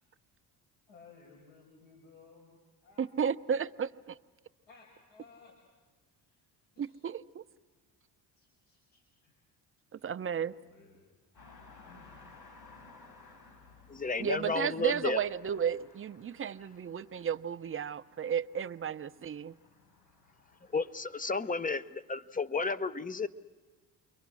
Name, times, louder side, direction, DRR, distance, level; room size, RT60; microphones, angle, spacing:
voice 1, 0.9-3.3 4.7-5.5 6.3-6.4 6.8-6.9 8.4-9.4 9.9-11.0 11.9-12.1, left 4 dB, 80° left, 5.8 m, -59 dB
voice 2, 3.0-4.2 6.8-7.4 9.9-10.5 14.2-19.5, right 7 dB, 30° right, 0.7 m, -33 dB
sound 1, 11.3-21.0, left 3 dB, 60° left, 7.4 m, -58 dB
voice 3, 13.9-15.2 20.7-23.3, left 4 dB, 20° left, 0.7 m, -32 dB
29.5 x 23.0 x 6.3 m
supercardioid pair, 80°, 43 cm